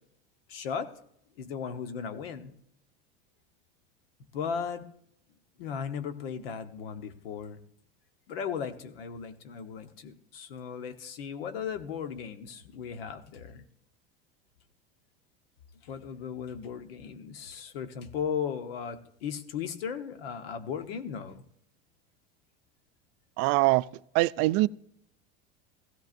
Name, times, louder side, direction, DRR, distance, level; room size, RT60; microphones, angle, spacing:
voice 1, 0.5-0.9 1.4-2.5 4.3-4.8 5.6-7.6 8.3-13.6 15.8-21.4, left 7 dB, 90° left, 1.2 m, -36 dB
voice 2, 23.4-23.8 24.1-24.7, right 20 dB, 55° right, 0.4 m, -23 dB
16.0 x 13.5 x 2.6 m
supercardioid pair, 110°, 29 cm